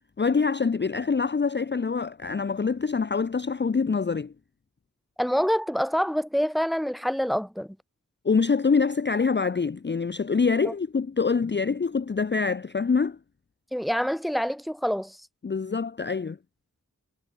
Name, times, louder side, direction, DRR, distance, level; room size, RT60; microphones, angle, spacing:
voice 1, 0.2-4.3 8.2-13.2 15.4-16.4, left 5 dB, 35° left, 0.5 m, -25 dB
voice 2, 5.2-7.7 13.7-15.2, equal, ahead, 1.4 m, -26 dB
wide cardioid pair, 45°, 32 cm